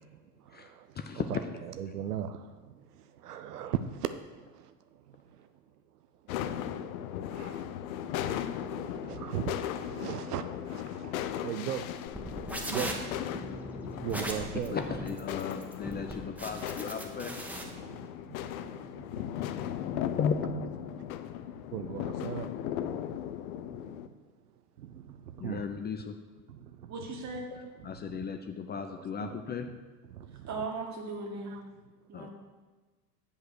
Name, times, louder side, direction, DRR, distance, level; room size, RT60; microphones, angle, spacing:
voice 1, 0.1-5.5 6.2-12.1 12.6-13.1 13.7-14.8 15.9-16.1 17.6-20.2 20.5-20.7 21.0-21.1 21.7-22.8 23.7-24.2 24.8-25.9 26.5-26.9 27.6-28.4 28.9-29.4 29.7-29.8 30.1-30.5 31.4-31.6, right 9 dB, 85° right, 0.6 m, -40 dB
voice 2, 1.0-1.3 14.7-17.4 20.2-20.4 25.4-26.2 27.8-29.7 32.1-32.3, left 6 dB, 20° left, 0.5 m, -35 dB
sound 1, 6.3-24.1, left 10 dB, 65° left, 0.7 m, -37 dB
sound 2, 12.1-17.6, right 1 dB, 5° right, 1.4 m, -38 dB
voice 3, 26.9-27.4 30.5-31.6 32.1-32.3, right 3 dB, 35° right, 2.0 m, -37 dB
7.8 x 5.5 x 6.3 m
hypercardioid pair, 75°, 45 cm